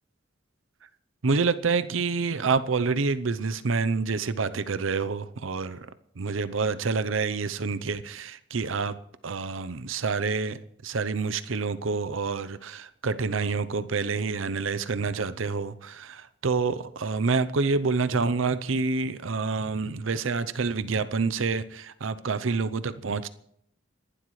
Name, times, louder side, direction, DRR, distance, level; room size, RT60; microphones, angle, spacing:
voice 1, 1.2-5.9 6.2-9.0 9.2-23.3, right 4 dB, 85° right, 14 dB, 0.7 m, -27 dB
30.0 x 11.5 x 3.2 m, 0.71 s
head